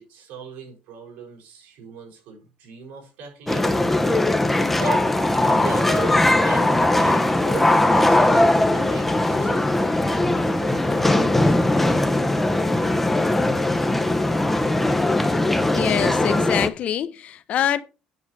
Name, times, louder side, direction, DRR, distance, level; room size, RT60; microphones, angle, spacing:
voice 1, 0.0-3.8 4.7-5.1 5.4-10.1 10.6-11.9, right 5 dB, 70° right, 6.4 m, -39 dB
sound 1, 3.5-16.7, left 1 dB, 5° left, 0.9 m, -20 dB
voice 2, 15.7-17.8, left 10 dB, 50° left, 0.8 m, -25 dB
9.7 x 7.2 x 4.7 m
cardioid pair, 150°, 3 cm